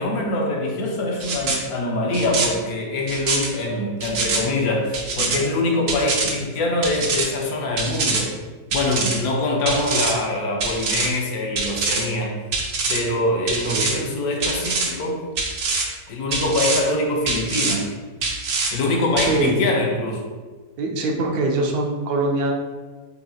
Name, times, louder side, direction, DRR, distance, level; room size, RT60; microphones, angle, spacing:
voice 1, 0.0-8.4 8.7-12.4 12.9-15.3 16.1-17.9 18.7-20.2, left 2 dB, 75° left, 0 dB, 1.2 m, -24 dB
sound 1, 1.2-1.6 2.1-2.5 3.1-3.5 4.0-4.4 4.9-5.4 5.9-6.3 6.8-7.2 7.8-8.2 8.7-9.2 9.7-10.1 10.6-11.1 11.6-12.0 12.5-13.0 13.5-13.9 14.4-14.9 15.4-15.9 16.3-16.8 17.3-17.8 18.2-18.7 19.2-19.3, right 4 dB, 60° right, 0.6 m, -24 dB
voice 2, 19.3-19.6 20.8-22.5, right 2 dB, 80° right, 1 dB, 1.1 m, -23 dB
4.7 x 2.8 x 2.7 m, 1.4 s
omnidirectional pair, 1.6 m